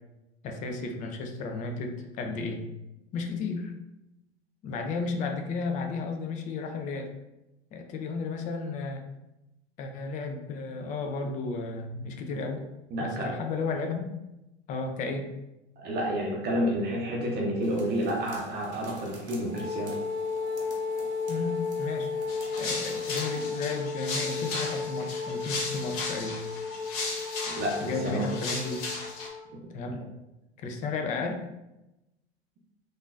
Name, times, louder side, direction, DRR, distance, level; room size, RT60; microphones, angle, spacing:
voice 1, 0.4-2.6 3.1-3.7 4.6-7.1 7.7-9.0 9.8-12.6 13.0-14.1 14.7-15.3 21.3-22.1 22.6-26.4 27.8-28.9 29.7-30.0 30.6-31.4, left 4 dB, 25° left, 4 dB, 0.4 m, -33 dB
voice 2, 12.9-13.3 15.8-19.9 27.5-28.2 29.8-30.0, equal, 30° right, -2 dB, 0.6 m, -30 dB
sound 1, 17.6-23.8, right 2 dB, 85° right, 0.8 m, -49 dB
Wind instrument woodwind instrument, 19.5-29.5, left 4 dB, 80° left, 0.6 m, -34 dB
sound 2, 22.3-29.3, left 3 dB, 50° left, 0.9 m, -36 dB
3.5 x 2.6 x 2.4 m, 0.94 s
figure-of-eight pair, 90°, 33 cm